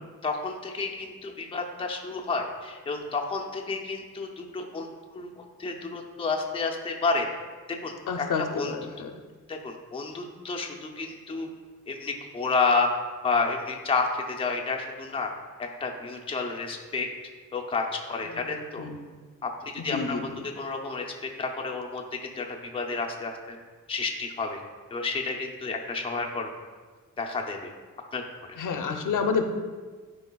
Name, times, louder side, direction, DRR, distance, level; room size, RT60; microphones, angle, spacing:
voice 1, 0.2-4.9 5.1-7.3 7.7-8.7 9.5-11.5 11.9-12.9 13.2-15.3 15.6-17.1 17.5-18.9 19.4-19.5 19.8-22.0 22.4-22.5 22.7-23.6 23.9-24.6 24.9-26.5 27.2-27.7 28.1-28.2, left 4 dB, 15° left, 1 dB, 0.5 m, -30 dB
voice 2, 8.1-9.1 18.3-18.4 18.8-19.0 19.9-20.4 28.6-29.4, left 5 dB, 65° left, 5 dB, 0.7 m, -29 dB
12.0 x 4.8 x 2.3 m, 1.4 s
wide cardioid pair, 165°, 34 cm